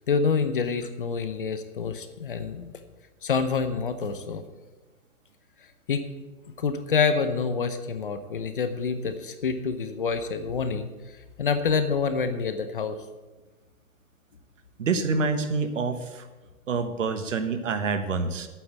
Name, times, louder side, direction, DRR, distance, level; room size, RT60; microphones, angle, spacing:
voice 1, 0.1-2.8 3.2-4.4 5.9-6.0 6.6-10.9 11.4-13.0, left 5 dB, 35° left, 10 dB, 0.7 m, -27 dB
voice 2, 14.8-16.2 16.7-18.5, right 4 dB, 60° right, 9 dB, 1.3 m, -27 dB
9.0 x 7.6 x 8.0 m, 1.2 s
hypercardioid pair, 165°, 43 cm